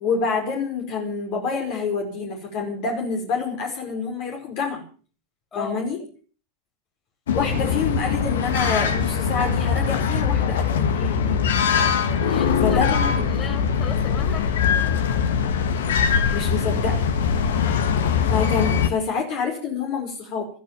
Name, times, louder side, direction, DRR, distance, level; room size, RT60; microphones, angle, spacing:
voice 1, 0.0-4.8 5.5-6.0 7.3-11.4 12.6-13.3 16.3-17.0 18.3-20.5, left 5 dB, 50° left, 2 dB, 4.9 m, -27 dB
sound 1, 7.3-18.9, left 6 dB, 70° left, 1.9 m, -22 dB
voice 2, 12.2-12.8 13.2-14.5, left 5 dB, 25° left, 4 dB, 5.8 m, -35 dB
14.0 x 13.5 x 7.4 m, 0.41 s
figure-of-eight pair, 85°, 0 cm